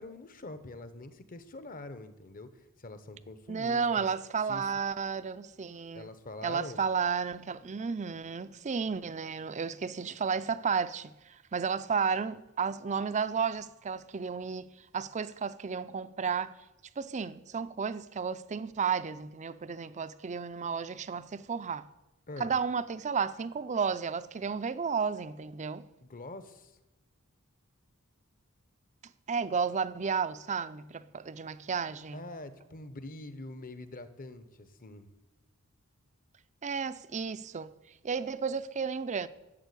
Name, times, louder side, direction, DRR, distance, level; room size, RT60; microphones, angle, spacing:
voice 1, 0.0-2.5 2.8-4.1 4.5-4.6 5.9-6.8 22.3-22.5 26.0-26.7 32.1-35.1, left 2 dB, 40° left, 1.0 m, -44 dB
voice 2, 3.5-6.1 6.4-16.6 17.0-21.9 22.4-25.8 29.3-32.3 36.6-37.7 38.0-39.3, right 6 dB, 35° right, 0.5 m, -32 dB
12.5 x 7.3 x 8.3 m
head